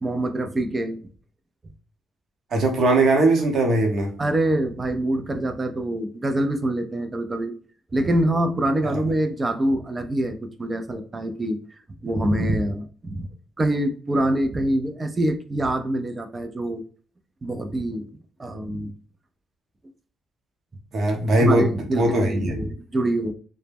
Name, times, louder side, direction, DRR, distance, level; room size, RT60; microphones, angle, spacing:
voice 1, 0.0-1.0 4.2-7.5 7.9-11.6 12.0-13.3 13.6-16.8 17.4-18.1 18.4-18.9 21.4-23.3, right 1 dB, 25° right, 7 dB, 0.4 m, -25 dB
voice 2, 2.5-4.1 8.8-9.0 20.9-22.6, right 2 dB, 60° right, 2 dB, 0.8 m, -20 dB
2.1 x 2.0 x 3.3 m, 0.42 s
cardioid pair, 90°, 0 cm